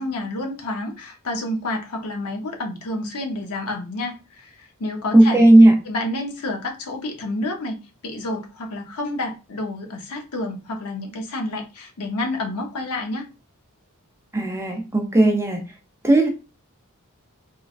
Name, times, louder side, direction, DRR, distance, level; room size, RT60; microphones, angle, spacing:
voice 1, 0.0-5.5 5.8-7.8 8.0-13.3, left 2 dB, 80° left, 0.8 m, -29 dB
voice 2, 5.1-5.8 14.3-15.6 16.0-16.3, right 1 dB, 10° right, 0.5 m, -14 dB
3.1 x 2.2 x 2.4 m
head